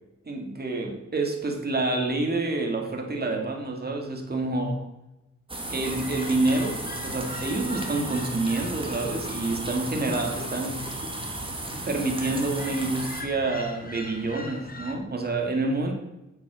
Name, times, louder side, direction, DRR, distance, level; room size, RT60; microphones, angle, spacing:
voice 1, 0.2-4.8 5.7-11.1 11.9-15.9, right 2 dB, 35° right, 2 dB, 2.4 m, -28 dB
sound 1, 5.5-13.2, right 2 dB, 20° right, 2.1 m, -34 dB
sound 2, 5.8-15.0, left 2 dB, 30° left, 1.6 m, -41 dB
8.1 x 7.6 x 6.3 m, 0.98 s
cardioid pair, 70°, 29 cm